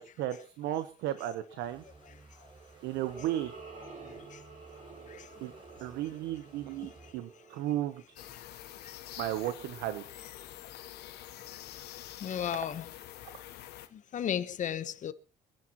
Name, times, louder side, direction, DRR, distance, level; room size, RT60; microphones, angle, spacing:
voice 1, 0.0-1.8 2.8-3.5 5.4-5.5 5.8-8.0 9.2-10.3, right 13 dB, 90° right, 0.9 m, -34 dB
sound 1, 1.6-7.1, right 3 dB, 30° right, 4.2 m, -56 dB
sound 2, 2.3-8.8, right 4 dB, 50° right, 6.5 m, -51 dB
sound 3, 8.2-13.9, left 13 dB, 80° left, 1.1 m, -47 dB
voice 2, 12.2-12.9 13.9-15.1, left 9 dB, 45° left, 1.0 m, -34 dB
25.0 x 10.5 x 3.0 m
cardioid pair, 110°, 17 cm